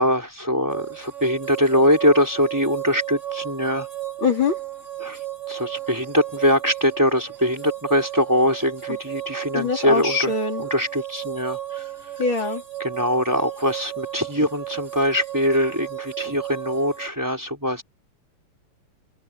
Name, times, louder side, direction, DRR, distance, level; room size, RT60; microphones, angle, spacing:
voice 1, 0.0-3.9 5.0-5.2 5.5-10.3 10.7-11.8 12.8-17.8, equal, 10° right, 4.5 m, -22 dB
sound 1, 0.7-17.1, right 13 dB, 30° right, 4.2 m, -34 dB
voice 2, 4.2-4.6 9.5-10.6 12.2-12.6, left 5 dB, 60° left, 4.1 m, -23 dB
omnidirectional pair, 2.4 m